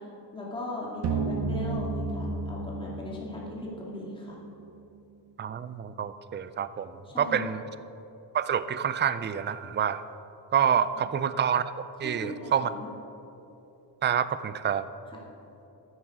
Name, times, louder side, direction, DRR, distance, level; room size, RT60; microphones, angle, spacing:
voice 1, 0.3-4.4 7.0-7.5 10.9-11.0 12.0-12.9, left 1 dB, 10° left, -5 dB, 2.4 m, -38 dB
sound 1, 1.0-4.0, right 3 dB, 65° right, 1.0 m, -31 dB
voice 2, 5.4-7.6 8.3-10.0 10.5-11.7 12.0-12.7 14.0-14.9, right 8 dB, 25° right, 13 dB, 0.4 m, -27 dB
12.0 x 9.5 x 5.0 m, 3.0 s
cardioid pair, 110°, 44 cm